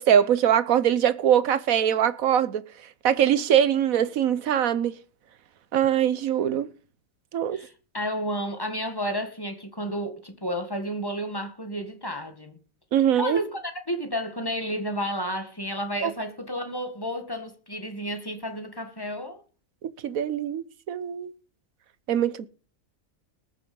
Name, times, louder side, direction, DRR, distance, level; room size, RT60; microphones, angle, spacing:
voice 1, 0.0-2.6 3.0-4.9 5.7-6.7 7.3-7.6 12.9-13.4 16.0-16.1 20.0-21.3 22.1-22.5, right 9 dB, 80° right, 1.3 m, -22 dB
voice 2, 7.5-12.5 13.2-19.4, equal, 15° left, 1.9 m, -31 dB
20.0 x 6.9 x 5.5 m
omnidirectional pair, 1.5 m